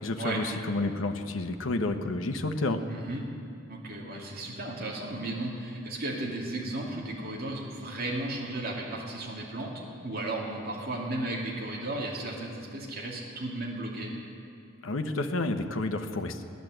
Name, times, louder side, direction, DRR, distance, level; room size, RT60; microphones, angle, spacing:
voice 1, 0.0-2.8 14.8-16.4, left 2 dB, 85° left, 6 dB, 1.0 m, -30 dB
voice 2, 2.9-3.2 3.7-9.7 10.0-14.1, right 2 dB, 50° right, -4 dB, 2.6 m, -34 dB
16.5 x 10.5 x 7.8 m, 2.5 s
head